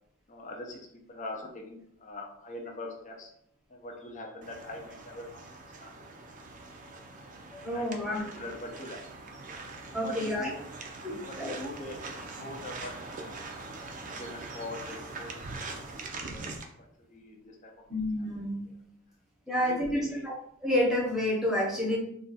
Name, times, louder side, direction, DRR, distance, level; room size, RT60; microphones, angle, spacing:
voice 1, 0.3-3.3 3.7-5.3 5.6-6.1 7.6-9.0 9.9-10.6 11.2-13.3 13.6-13.7 14.0-15.3 15.7-15.8 16.1-16.5 16.8-17.7 18.6-18.7 19.5-20.3, left 2 dB, 40° left, 1 dB, 0.5 m, -43 dB
sound 1, 4.4-16.6, right 3 dB, 40° right, 0.4 m, -43 dB
voice 2, 7.5-8.2 9.9-10.5 11.0-11.6 17.9-18.7 19.5-20.3 20.6-22.0, left 1 dB, ahead, -4 dB, 0.8 m, -29 dB
2.5 x 2.3 x 3.9 m, 0.69 s
head